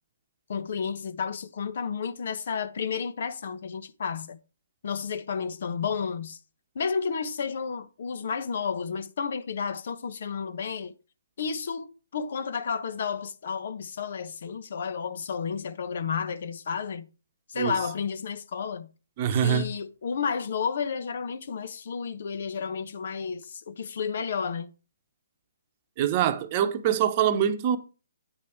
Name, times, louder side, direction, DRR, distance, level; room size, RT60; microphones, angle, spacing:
voice 1, 0.5-4.4 4.8-6.4 6.7-10.9 11.4-17.1 17.5-18.9 19.3-24.7, left 6 dB, 55° left, 1.0 m, -31 dB
voice 2, 19.2-19.7 26.0-27.8, right 9 dB, 35° right, 1.0 m, -24 dB
9.0 x 5.2 x 4.6 m
figure-of-eight pair, 140°, 0 cm